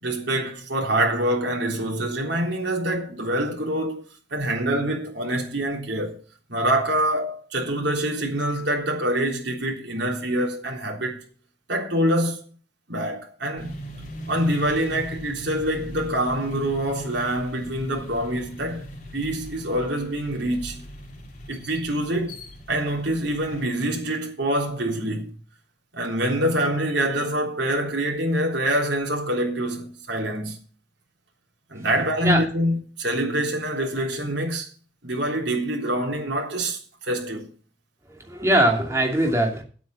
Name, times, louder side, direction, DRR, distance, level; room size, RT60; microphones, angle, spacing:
voice 1, 0.0-4.0 4.3-6.2 6.5-11.2 11.7-12.4 12.9-13.8 14.3-18.9 19.1-20.8 21.5-22.4 22.7-25.4 25.9-30.6 31.7-34.7 35.0-37.5, right 1 dB, 70° right, 3.7 m, -25 dB
sound 1, 13.6-23.7, equal, 45° left, 3.1 m, -40 dB
voice 2, 38.1-39.6, right 1 dB, 15° right, 2.7 m, -21 dB
9.4 x 8.4 x 7.2 m
head